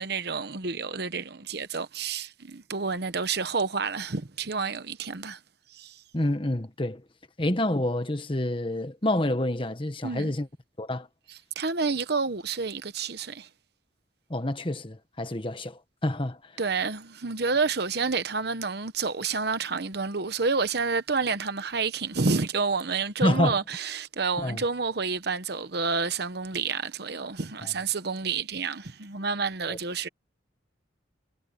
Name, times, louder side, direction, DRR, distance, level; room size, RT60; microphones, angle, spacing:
voice 1, 0.0-5.4 5.7-6.0 10.0-10.4 11.3-13.5 16.6-30.1, right 4 dB, 60° right, 1.1 m, -29 dB
voice 2, 6.1-7.0 7.4-10.5 10.8-11.1 14.3-16.4 23.2-23.6 24.4-24.6 29.7-29.8, left 1 dB, 25° left, 1.3 m, -28 dB
head